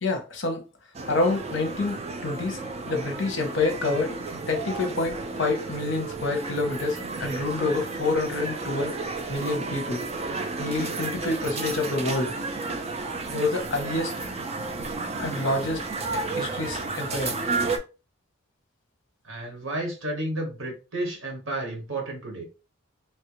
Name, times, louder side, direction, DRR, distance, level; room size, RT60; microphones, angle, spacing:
voice 1, 0.0-0.6 1.1-2.6 2.9-4.1 4.5-9.0 9.3-10.0 10.6-12.3 13.2-14.1 15.2-15.9 16.1-17.3, left 3 dB, 60° left, 0.7 m, -27 dB
sound 1, 0.9-17.8, right 3 dB, 30° right, 0.4 m, -32 dB
voice 2, 19.2-22.4, right 1 dB, 70° right, 1.3 m, -32 dB
3.1 x 2.4 x 3.0 m
head